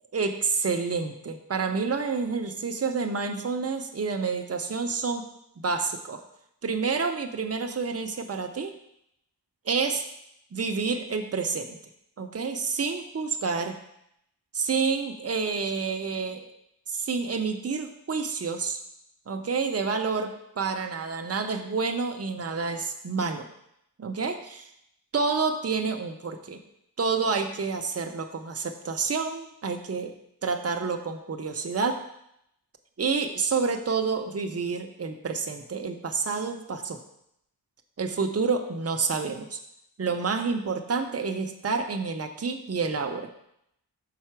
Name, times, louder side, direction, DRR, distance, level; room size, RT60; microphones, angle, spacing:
voice 1, 0.1-5.3 5.6-6.2 6.6-8.7 9.7-10.0 10.5-11.8 12.2-13.8 14.5-16.5 16.9-18.8 19.3-23.5 24.0-24.7 25.1-26.6 27.0-30.1 30.4-32.0 33.0-37.0 38.0-39.6 40.0-43.3, right 4 dB, 35° right, 5 dB, 0.7 m, -29 dB
5.6 x 4.2 x 5.9 m, 0.78 s
wide cardioid pair, 70°, 41 cm